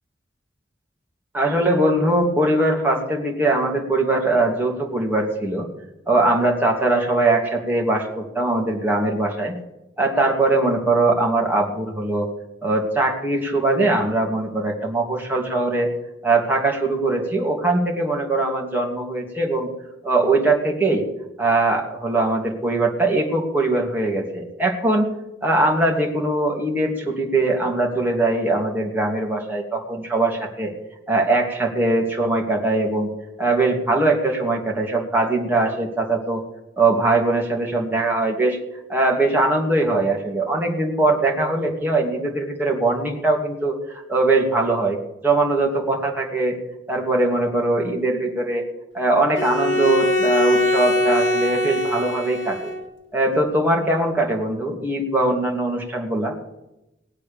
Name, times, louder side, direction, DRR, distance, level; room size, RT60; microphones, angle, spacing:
voice 1, 1.3-5.7 6.1-9.5 10.0-12.3 12.6-15.9 16.2-19.7 20.0-21.1 21.4-25.1 25.4-30.7 31.1-33.1 33.4-36.4 36.8-38.6 38.9-45.0 45.2-46.6 46.9-48.6 48.9-52.7 53.1-56.3, right 2 dB, 10° right, -1 dB, 2.8 m, -21 dB
Bowed string instrument, 49.4-52.9, left 1 dB, 90° left, 1.8 m, -22 dB
19.0 x 8.1 x 7.1 m, 0.91 s
head